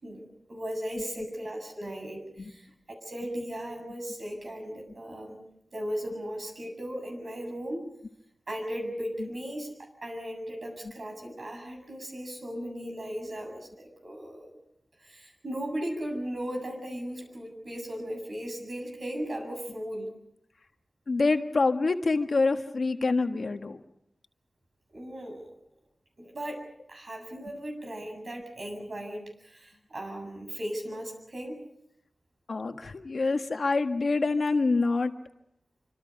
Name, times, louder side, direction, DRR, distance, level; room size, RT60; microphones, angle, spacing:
voice 1, 0.0-2.7 3.0-5.5 5.7-7.9 8.5-14.6 15.0-20.1 24.9-25.5 26.2-26.6 26.9-31.6, equal, 60° right, 3 dB, 7.8 m, -37 dB
voice 2, 21.1-23.8 32.5-35.1, left 3 dB, 70° left, 6 dB, 1.5 m, -26 dB
26.5 x 26.0 x 5.3 m, 0.74 s
wide cardioid pair, 80°, 0 cm